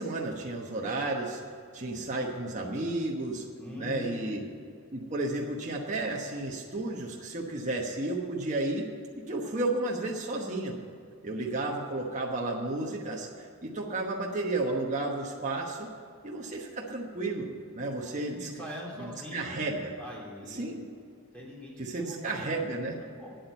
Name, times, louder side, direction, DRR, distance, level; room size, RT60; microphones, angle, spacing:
voice 1, 0.0-1.4 1.7-3.4 3.8-4.4 4.9-8.9 9.2-10.8 11.2-15.9 16.2-17.5 17.7-18.5 19.0-19.9 20.5-20.8 21.8-23.0, right 2 dB, 35° right, -2 dB, 1.1 m, -32 dB
voice 2, 3.6-4.4 18.4-19.6 20.0-20.8 21.3-22.6 22.9-23.3, left 1 dB, 5° left, -5 dB, 3.5 m, -42 dB
9.5 x 8.7 x 8.1 m, 2.4 s
head